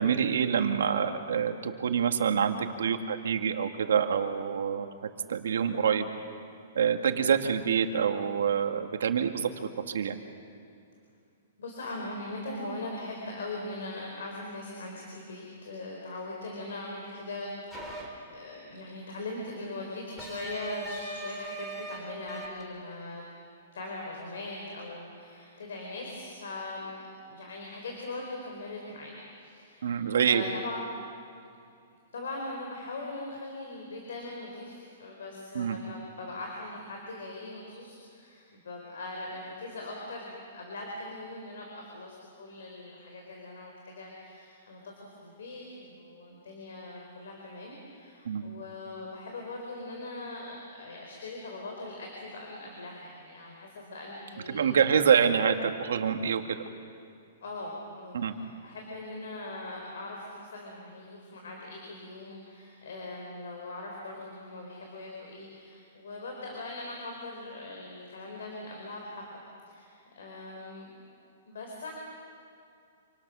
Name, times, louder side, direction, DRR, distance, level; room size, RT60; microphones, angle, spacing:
voice 1, 0.0-4.9 5.3-6.1 6.8-10.2 29.8-30.4 35.5-35.8 48.3-48.4 54.5-56.6 58.1-58.3, right 7 dB, 75° right, 6 dB, 1.9 m, -26 dB
voice 2, 11.6-23.2 23.7-26.9 27.2-30.0 30.3-30.9 32.1-54.8 57.4-69.3 69.7-70.9 71.4-71.9, left 2 dB, 75° left, 0 dB, 4.7 m, -41 dB
sound 1, 17.7-18.1 20.2-22.0 22.3-22.6, right 1 dB, ahead, 2.5 m, -39 dB
27.5 x 26.0 x 6.3 m, 2.5 s
hypercardioid pair, 180°, 0 cm